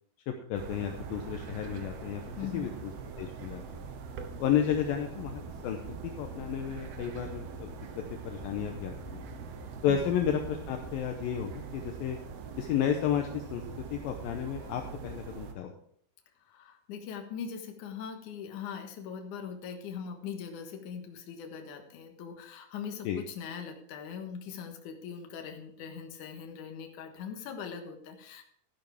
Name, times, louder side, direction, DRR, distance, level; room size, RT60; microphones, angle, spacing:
voice 1, 0.3-2.2 2.5-2.9 3.2-3.6 4.4-5.8 6.0-7.7 8.2-9.2 9.8-12.2 12.6-15.7 23.0-23.2, left 9 dB, 75° left, 4 dB, 2.1 m, -32 dB
sound 1, 0.5-15.5, right 5 dB, 70° right, 2.6 m, -43 dB
voice 2, 2.4-2.7 9.9-10.0 16.5-28.4, left 7 dB, 60° left, 4 dB, 2.2 m, -41 dB
sound 2, 5.1-10.9, right 1 dB, 20° right, 4.0 m, -52 dB
13.5 x 10.5 x 3.5 m, 0.64 s
omnidirectional pair, 5.2 m